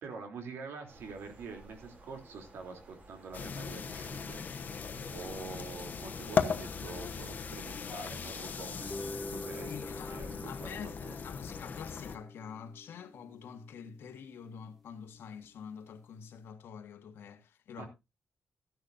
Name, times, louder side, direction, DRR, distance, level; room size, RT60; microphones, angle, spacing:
voice 1, 0.0-4.4 5.0-9.7 10.1-11.1 17.8-17.9, right 4 dB, 90° right, 3.1 m, -46 dB
sound 1, 0.9-10.7, right 2 dB, 40° right, 3.2 m, -55 dB
sound 2, 3.3-12.2, left 6 dB, 45° left, 1.1 m, -38 dB
sound 3, 8.7-15.2, left 1 dB, ahead, 1.0 m, -47 dB
voice 2, 9.6-17.9, left 7 dB, 85° left, 1.5 m, -46 dB
14.0 x 10.5 x 2.6 m
wide cardioid pair, 165°, 4 cm